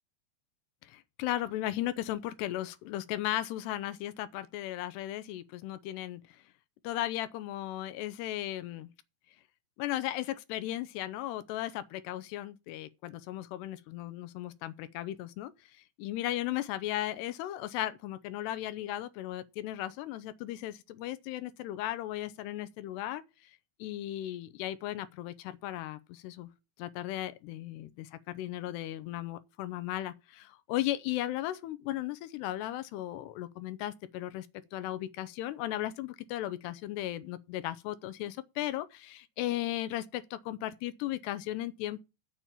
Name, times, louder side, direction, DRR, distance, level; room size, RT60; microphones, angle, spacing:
voice 1, 0.8-6.4 6.8-8.9 9.8-23.5 23.8-26.5 26.8-42.0, left 14 dB, 80° left, 2.6 m, -36 dB
7.4 x 7.2 x 8.4 m
omnidirectional pair, 5.3 m